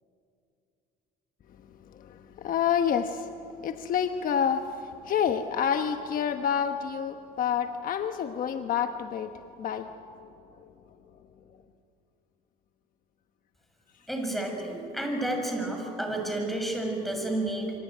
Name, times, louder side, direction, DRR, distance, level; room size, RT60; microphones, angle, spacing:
voice 1, 2.4-3.3 3.6-4.7 5.0-9.3 9.6-9.9, left 8 dB, 55° left, 7 dB, 1.2 m, -28 dB
voice 2, 14.1-17.7, right 1 dB, ahead, 3 dB, 6.5 m, -31 dB
26.0 x 24.5 x 9.2 m, 2.6 s
cardioid pair, 110°, 17 cm